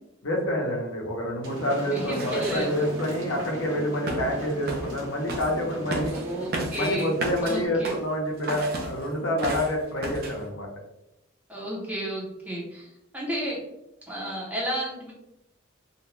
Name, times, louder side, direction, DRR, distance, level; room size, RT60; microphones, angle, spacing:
voice 1, 0.2-6.1 6.7-10.7, equal, 70° left, -1 dB, 0.7 m, -27 dB
sound 1, 1.4-7.6, equal, 70° right, 0.8 m, -38 dB
voice 2, 1.9-2.7 6.1-7.1 7.4-7.9 11.5-12.9 13.1-13.6 14.1-15.1, right 1 dB, 10° right, -5 dB, 0.6 m, -32 dB
sound 2, 2.1-3.1 4.1-4.4 4.7-5.0 5.3-5.6 5.9-8.1 8.4-9.1 9.4-9.8 10.0-10.4, right 2 dB, 50° right, 0.4 m, -33 dB
2.5 x 2.1 x 3.0 m, 0.85 s
head